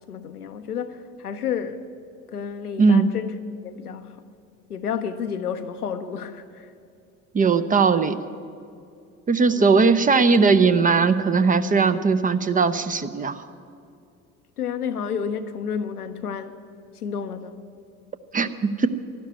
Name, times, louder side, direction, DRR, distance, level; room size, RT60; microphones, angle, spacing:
voice 1, 0.1-1.9 2.3-3.4 3.6-4.2 4.7-6.7 9.5-9.7 14.6-16.6 16.9-17.7, left 7 dB, 85° left, 0.8 m, -31 dB
voice 2, 2.8-3.1 7.3-8.2 9.3-13.4 18.3-18.5 18.8-18.9, right 4 dB, 20° right, 0.6 m, -19 dB
12.0 x 11.5 x 9.5 m
figure-of-eight pair, 60°, 44 cm